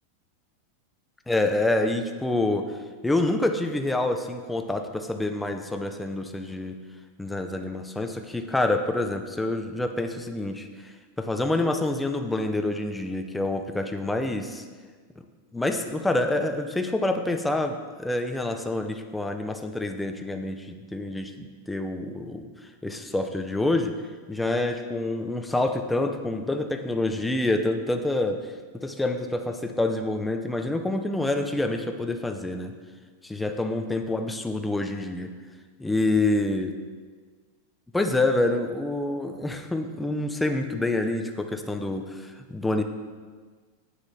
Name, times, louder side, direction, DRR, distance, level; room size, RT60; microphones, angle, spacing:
voice 1, 1.3-2.7 3.0-6.8 7.2-14.6 15.5-22.4 22.8-23.9 24.3-28.5 28.7-32.7 33.2-35.3 35.8-36.7 37.9-42.8, left 2 dB, 5° left, 5 dB, 0.6 m, -27 dB
9.9 x 8.2 x 4.2 m, 1.5 s
supercardioid pair, 155°, 0 cm